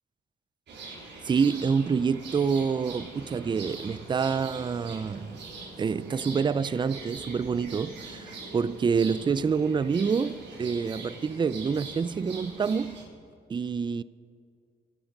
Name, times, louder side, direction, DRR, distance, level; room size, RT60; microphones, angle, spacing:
sound 1, 0.7-13.0, right 3 dB, 65° right, 4.2 m, -43 dB
voice 1, 1.2-5.4 5.8-13.0 13.5-14.0, right 5 dB, 25° right, 0.4 m, -27 dB
25.0 x 8.8 x 5.3 m
cardioid pair, 90°, 20 cm